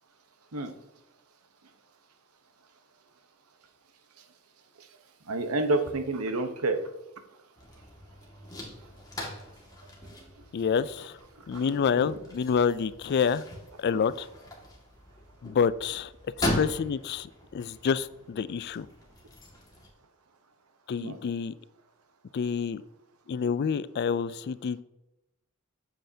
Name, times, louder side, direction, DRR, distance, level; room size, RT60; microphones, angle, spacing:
voice 1, 5.3-6.8 11.7-12.1 16.4-16.5 21.0-21.2, right 2 dB, 90° right, 7 dB, 1.0 m, -29 dB
sound 1, 7.6-19.9, left 1 dB, 20° left, 1.9 m, -39 dB
voice 2, 10.5-11.1 11.5-13.4 13.8-14.3 15.4-16.1 16.4-17.3 17.5-18.9 20.9-21.5 22.3-22.8 23.3-24.8, left 6 dB, 50° left, 17 dB, 0.3 m, -28 dB
8.9 x 7.6 x 2.8 m, 0.94 s
head